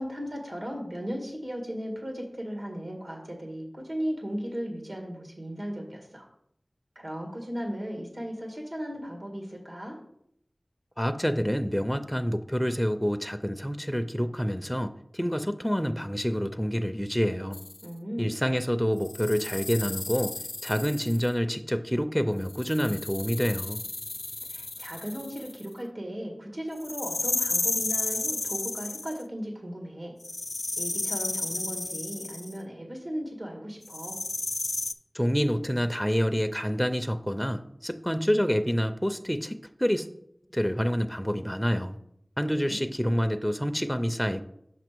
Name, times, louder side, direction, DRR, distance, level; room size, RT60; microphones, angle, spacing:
voice 1, 0.0-6.3 7.0-10.0 17.8-18.3 24.5-30.1 30.8-34.2 42.5-42.8, equal, 80° right, 1 dB, 1.9 m, -36 dB
voice 2, 11.0-17.6 18.2-20.3 20.6-23.8 35.1-40.1 40.5-42.0 42.4-44.4, equal, 5° left, 8 dB, 0.4 m, -27 dB
sound 1, 17.5-17.9 19.0-21.3 22.5-25.7 26.8-29.2 30.2-32.6 33.9-34.9, left 2 dB, 80° left, 0.3 m, -33 dB
5.9 x 5.8 x 4.5 m, 0.73 s
wide cardioid pair, 45°, 0 cm